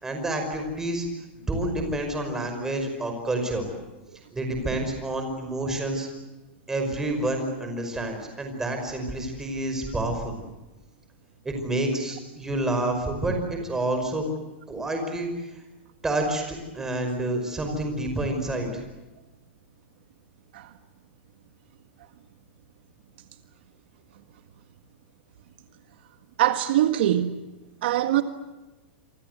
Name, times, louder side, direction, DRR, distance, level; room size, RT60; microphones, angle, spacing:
voice 1, 0.0-1.1 1.5-3.6 4.3-6.1 6.7-10.4 11.5-14.2 14.7-15.5 16.0-18.7, right 1 dB, 10° right, 5.4 m, -28 dB
voice 2, 26.4-27.3 27.8-28.2, right 12 dB, 65° right, 1.7 m, -22 dB
28.0 x 24.5 x 8.1 m
supercardioid pair, 165°, 6 cm